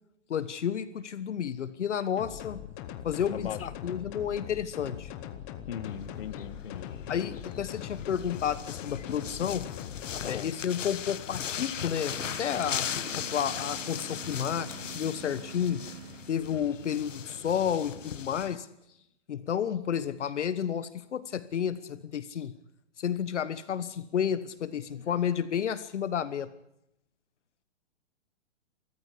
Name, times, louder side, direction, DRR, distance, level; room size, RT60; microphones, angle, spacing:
voice 1, 0.3-2.6 3.0-5.1 7.1-9.7 10.3-12.9 13.1-15.9 16.3-18.7 19.3-22.5 23.0-26.5, left 8 dB, 70° left, 14 dB, 1.3 m, -31 dB
sound 1, 2.2-10.4, left 10 dB, 15° left, 0.9 m, -41 dB
voice 2, 3.3-3.7 5.7-6.9 10.2-10.5, left 9 dB, 55° left, 14 dB, 1.5 m, -38 dB
sound 2, 5.8-18.6, left 8 dB, 90° left, 1.5 m, -38 dB
sound 3, 12.1-16.8, right 9 dB, 60° right, 1.1 m, -47 dB
29.0 x 14.0 x 8.4 m, 0.82 s
hypercardioid pair, 170°, 37 cm